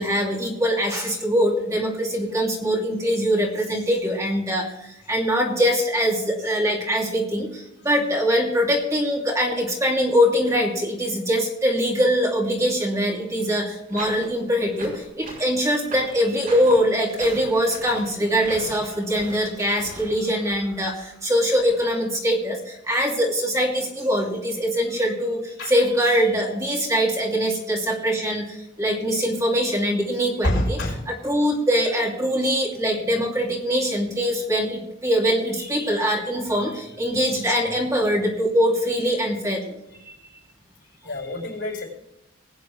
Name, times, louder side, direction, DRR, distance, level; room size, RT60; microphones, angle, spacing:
voice 1, 0.0-4.7 5.1-7.5 7.8-20.9 21.2-22.6 22.9-25.4 25.7-28.5 28.8-30.8 31.1-39.6, equal, 15° right, -1 dB, 2.6 m, -22 dB
sound 1, 13.9-20.1, right 1 dB, 45° right, 5.0 m, -39 dB
voice 2, 30.4-31.1 37.1-37.2 39.3-39.4 41.0-41.8, left 1 dB, 60° left, 1 dB, 5.1 m, -27 dB
19.5 x 9.3 x 3.4 m, 0.87 s
head